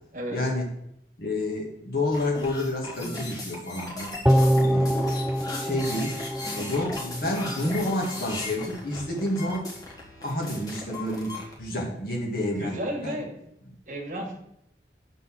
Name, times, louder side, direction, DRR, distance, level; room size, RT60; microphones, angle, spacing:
voice 1, 0.3-0.7 1.2-4.1 4.6-5.1 5.5-6.2 6.5-9.7 10.2-12.7 13.0-13.2, left 1 dB, 55° left, -1 dB, 1.9 m, -29 dB
sound 1, 2.1-11.5, left 2 dB, 20° left, 1.4 m, -37 dB
sound 2, 4.2-7.6 7.9-8.0, equal, 5° right, 0.3 m, -24 dB
voice 2, 12.6-13.4 13.9-14.3, equal, 45° right, 1 dB, 1.6 m, -33 dB
8.0 x 4.0 x 6.3 m, 0.76 s
head